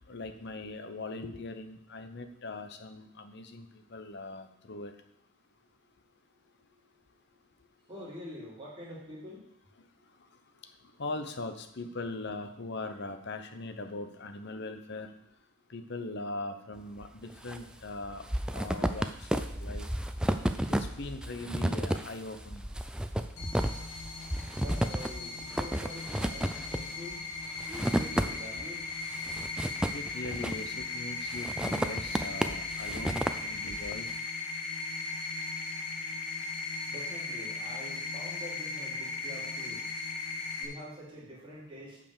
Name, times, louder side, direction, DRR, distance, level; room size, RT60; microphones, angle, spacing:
voice 1, 0.1-4.9 11.0-15.1 15.7-18.2 18.5-19.9 20.7-22.7 29.9-34.1, left 2 dB, 50° left, 8 dB, 0.9 m, -40 dB
voice 2, 7.8-9.5 24.2-28.9 36.9-39.8 40.6-42.0, equal, 20° right, -6 dB, 2.9 m, -46 dB
sound 1, 17.0-17.6 17.9-28.6 29.0-30.8 31.3-34.0, right 1 dB, 5° right, 0.3 m, -32 dB
sound 2, 23.4-40.6, left 3 dB, 80° left, 1.6 m, -37 dB
8.8 x 5.1 x 6.7 m, 0.77 s
head